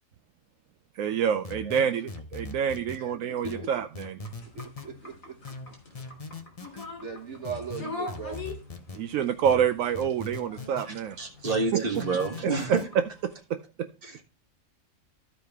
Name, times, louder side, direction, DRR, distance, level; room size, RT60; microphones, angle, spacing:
voice 1, 1.0-4.1 8.9-11.2 11.7-12.0 12.7-13.9, right 8 dB, 80° right, 8 dB, 1.0 m, -27 dB
sound 1, 1.4-3.0 3.4-4.9 5.4-6.9 7.4-9.0 9.4-10.9 11.4-12.9, left 3 dB, 30° left, 0.9 m, -40 dB
voice 2, 1.5-1.9 2.9-3.7 4.5-5.6 6.6-8.5, right 5 dB, 60° right, 4 dB, 1.4 m, -40 dB
sound 2, 4.2-13.3, left 3 dB, 80° left, 3.6 m, -44 dB
voice 3, 10.9-12.8 14.0-14.2, right 4 dB, 45° right, 1 dB, 1.9 m, -29 dB
14.0 x 5.0 x 3.5 m, 0.32 s
omnidirectional pair, 1.4 m